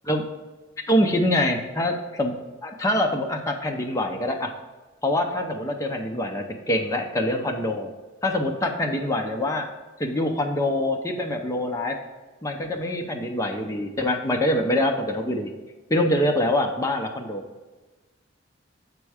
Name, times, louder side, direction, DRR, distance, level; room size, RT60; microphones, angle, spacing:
voice 1, 0.9-2.3 2.6-4.5 5.0-7.9 8.2-9.6 10.0-11.9 12.4-15.5 15.9-17.4, left 1 dB, 15° left, 2 dB, 0.6 m, -24 dB
8.3 x 4.5 x 4.8 m, 1.2 s
head